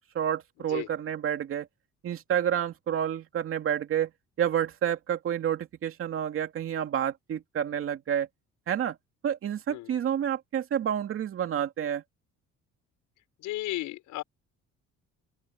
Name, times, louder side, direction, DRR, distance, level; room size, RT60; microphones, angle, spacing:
voice 1, 0.1-1.7 2.0-4.1 4.4-8.3 8.7-9.0 9.2-12.0, right 9 dB, 45° right, 2.6 m, -29 dB
voice 2, 13.4-14.2, left 17 dB, 85° left, 5.7 m, -34 dB
open air
cardioid pair, 145°, 30 cm